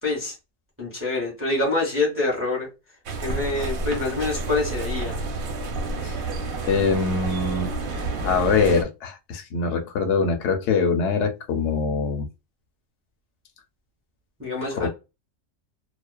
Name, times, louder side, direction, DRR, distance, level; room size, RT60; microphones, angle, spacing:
voice 1, 0.0-0.4 0.8-2.7 3.2-5.2 14.4-14.9, left 3 dB, 10° right, 0.8 m, -26 dB
sound 1, 3.1-8.8, right 3 dB, 85° right, 1.1 m, -30 dB
voice 2, 6.7-7.7 8.2-12.3 14.8-14.9, left 4 dB, 65° left, 0.8 m, -23 dB
2.4 x 2.3 x 2.2 m
omnidirectional pair, 1.4 m